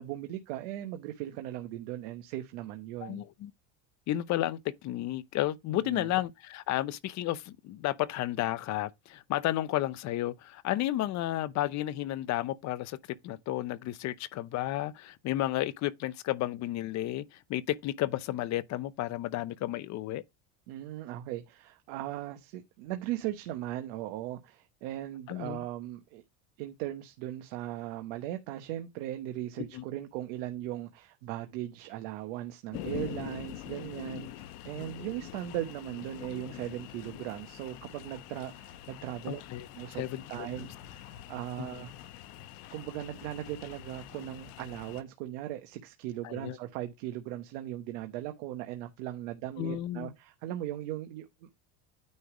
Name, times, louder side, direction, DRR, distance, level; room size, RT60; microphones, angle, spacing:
voice 1, 0.0-3.2 5.7-6.1 20.7-26.2 26.6-39.4 39.7-40.0 40.3-41.9 42.7-51.7, right 13 dB, 85° right, 1.0 m, -38 dB
voice 2, 3.0-3.5 4.1-13.0 13.2-20.2 25.3-25.6 29.7-29.8 39.3-39.7 40.0-40.7 41.6-41.7 46.2-46.6 49.6-50.1, left 14 dB, 50° left, 0.7 m, -32 dB
sound 1, 32.7-45.0, left 13 dB, 75° left, 0.9 m, -45 dB
9.5 x 3.3 x 4.8 m
cardioid pair, 130°, 36 cm